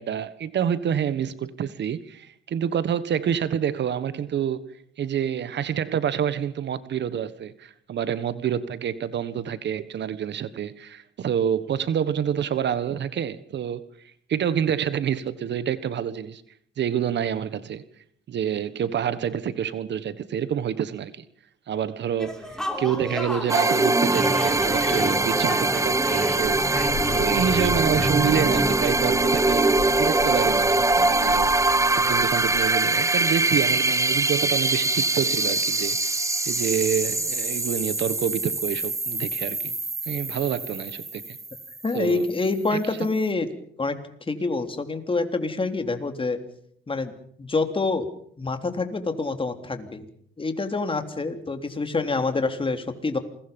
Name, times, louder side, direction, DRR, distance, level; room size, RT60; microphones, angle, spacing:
voice 1, 0.0-16.4 16.8-17.9 18.3-21.2 21.7-26.6 27.1-39.7 40.0-41.4 41.9-42.2 42.7-42.8, right 8 dB, 60° right, 1.4 m, -28 dB
sound 1, 22.2-27.2, left 1 dB, 5° left, 6.7 m, -33 dB
sound 2, 23.5-42.0, right 2 dB, 15° right, 1.2 m, -23 dB
sound 3, 26.4-32.7, left 8 dB, 70° left, 1.6 m, -37 dB
voice 2, 41.8-43.5 43.8-44.0 44.3-46.4 46.9-47.1 47.4-48.1 48.4-50.1 50.4-53.2, left 3 dB, 25° left, 3.5 m, -26 dB
28.0 x 22.0 x 5.4 m
cardioid pair, 90°, 20 cm